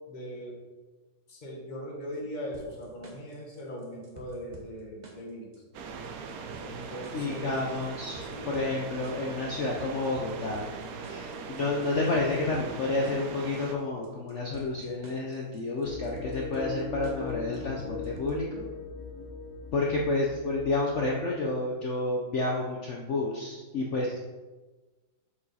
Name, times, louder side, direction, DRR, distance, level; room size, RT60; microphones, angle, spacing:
voice 1, 0.1-0.5 1.3-5.5 6.6-7.7 8.3-8.5, equal, 25° left, -2 dB, 1.2 m, -40 dB
sound 1, 2.5-18.5, right 2 dB, 45° right, 0.5 m, -51 dB
sound 2, 5.7-13.8, right 5 dB, 80° right, 0.8 m, -40 dB
voice 2, 7.1-10.7 11.0-18.7 19.7-24.2, left 2 dB, 85° left, -1 dB, 0.6 m, -30 dB
sound 3, 15.8-21.2, left 3 dB, 55° left, 1.2 m, -39 dB
7.2 x 4.8 x 4.2 m, 1.2 s
omnidirectional pair, 2.2 m